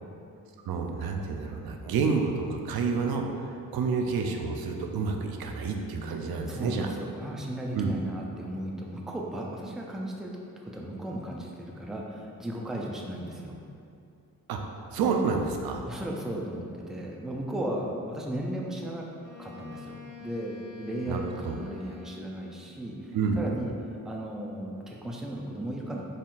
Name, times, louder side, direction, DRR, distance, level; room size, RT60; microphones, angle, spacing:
voice 1, 0.7-6.9 7.7-7.9 14.5-14.6 14.9-15.8 21.1-21.6 23.1-23.4, right 5 dB, 90° right, 3 dB, 0.5 m, -29 dB
voice 2, 6.5-10.3 10.6-13.6 15.8-19.1 19.4-23.7 24.0-26.0, right 1 dB, ahead, -1 dB, 0.3 m, -35 dB
Wind instrument woodwind instrument, 19.2-22.7, left 6 dB, 65° left, 0.6 m, -47 dB
4.2 x 3.7 x 2.4 m, 2.5 s
cardioid pair, 100°, 35 cm